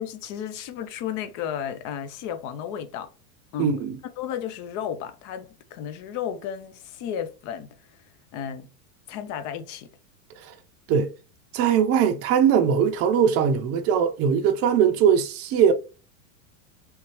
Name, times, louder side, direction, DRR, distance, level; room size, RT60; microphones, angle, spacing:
voice 1, 0.0-3.1 3.5-3.7 4.2-7.7 8.3-8.7 9.1-9.9 10.9-11.0, left 9 dB, 40° left, 0.7 m, -33 dB
voice 2, 3.6-4.0 10.9-11.1 11.5-15.7, right 7 dB, 30° right, 0.6 m, -20 dB
3.5 x 2.7 x 3.0 m
supercardioid pair, 125°, 48 cm